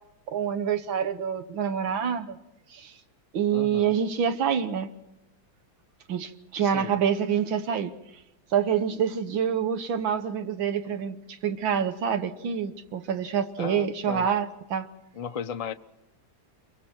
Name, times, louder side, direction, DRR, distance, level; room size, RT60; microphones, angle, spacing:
voice 1, 0.3-2.4 2.7-2.9 3.3-4.9 6.1-7.9 8.5-14.9, right 8 dB, 85° right, 9 dB, 2.0 m, -27 dB
voice 2, 3.5-4.0 6.6-7.0 13.6-14.3 15.1-15.7, left 6 dB, 50° left, 8 dB, 0.4 m, -35 dB
29.5 x 23.5 x 4.6 m, 0.93 s
omnidirectional pair, 2.1 m